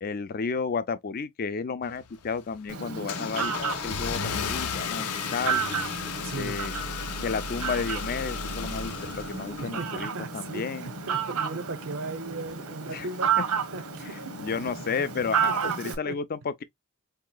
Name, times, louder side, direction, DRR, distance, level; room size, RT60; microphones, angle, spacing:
voice 1, 0.0-5.7 6.3-6.7 7.2-10.9 12.9-13.1 13.4-13.5 14.1-16.6, left 5 dB, 40° left, 0.4 m, -32 dB
Car / Engine starting, 1.8-10.0, left 6 dB, 85° left, 0.6 m, -34 dB
Fowl, 2.7-15.9, right 6 dB, 85° right, 1.0 m, -32 dB
voice 2, 6.2-6.6 9.6-13.3 13.7-14.2 15.6-16.2, right 3 dB, 60° right, 0.6 m, -37 dB
4.6 x 2.8 x 2.2 m
head